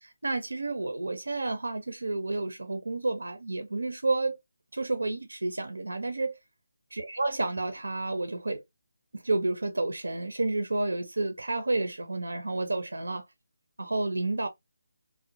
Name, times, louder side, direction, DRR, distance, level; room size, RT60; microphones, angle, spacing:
voice 1, 0.0-4.4 4.7-6.4 7.0-8.6 9.1-13.2 13.8-14.5, right 2 dB, 90° right, 0.6 m, -30 dB
2.7 x 2.2 x 2.7 m
figure-of-eight pair, 160°, 0 cm